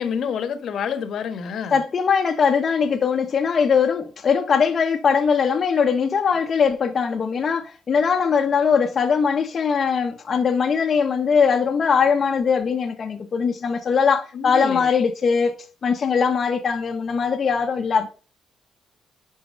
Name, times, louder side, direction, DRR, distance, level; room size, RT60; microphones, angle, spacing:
voice 1, 0.0-1.8 14.3-14.9, left 7 dB, 65° left, 1.4 m, -28 dB
voice 2, 1.7-15.6 15.8-18.1, left 6 dB, 45° left, 1.1 m, -21 dB
10.5 x 4.6 x 5.3 m
cardioid pair, 90°, 0 cm